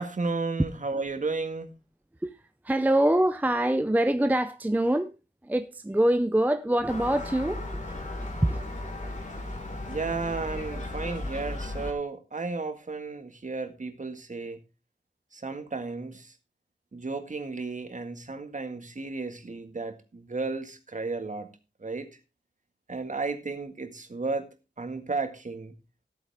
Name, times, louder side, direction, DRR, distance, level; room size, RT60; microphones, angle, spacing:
voice 1, 0.0-1.7 9.9-14.6 15.3-16.3 16.9-21.5 21.8-22.1 22.9-24.5 24.8-25.7, right 3 dB, 45° right, 1.8 m, -33 dB
voice 2, 2.6-5.1 5.4-7.6 7.9-8.0 8.2-8.6, right 1 dB, 10° right, 0.5 m, -24 dB
Gull seagull, 6.9-11.9, left 1 dB, 45° left, 3.2 m, -36 dB
14.5 x 8.9 x 3.5 m
wide cardioid pair, 95°, 18 cm